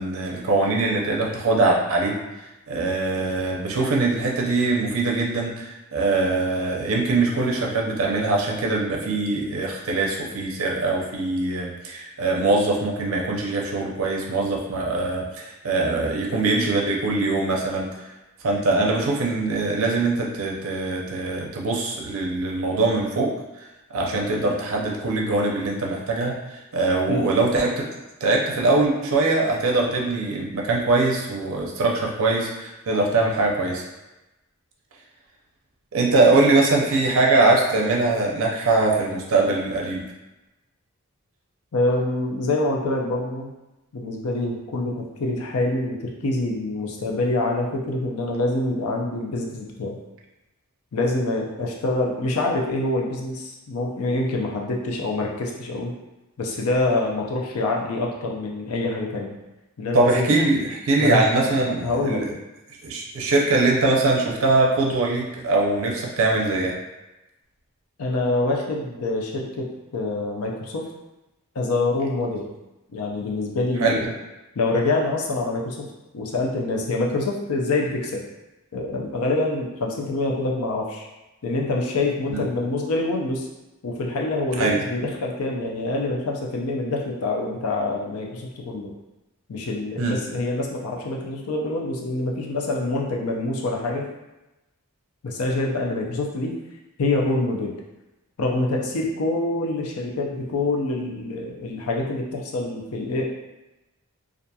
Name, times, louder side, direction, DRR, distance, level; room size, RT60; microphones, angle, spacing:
voice 1, 0.0-2.2 2.7-17.9 18.4-23.3 23.9-27.8 28.2-33.8 35.9-40.0 59.9-62.3 62.8-66.7 73.8-74.0 82.3-82.4 84.6-84.8 90.0-90.2, right 3 dB, 65° right, -1 dB, 0.5 m, -22 dB
voice 2, 41.7-43.5 43.9-50.0 50.9-55.9 56.4-59.4 59.8-60.3 61.0-61.3 61.6-62.2 68.0-70.9 71.6-72.5 72.9-74.1 74.6-75.9 76.1-78.2 78.7-81.1 81.4-83.5 83.8-88.9 89.5-94.0 95.2-96.5 97.0-97.7 98.4-103.2, left 2 dB, 80° left, -1 dB, 0.5 m, -26 dB
2.7 x 2.4 x 2.2 m, 1.0 s
head